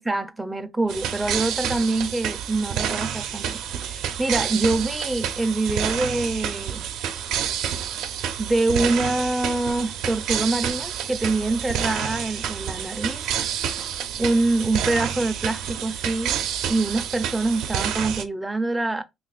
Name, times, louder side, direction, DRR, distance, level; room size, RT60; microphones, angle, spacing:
voice 1, 0.0-6.9 8.4-13.4 14.2-16.4 16.7-19.0, right 2 dB, 10° right, 0.5 m, -25 dB
sound 1, 0.9-18.2, right 9 dB, 80° right, 0.5 m, -29 dB
2.9 x 2.5 x 3.8 m
cardioid pair, 115°, 0 cm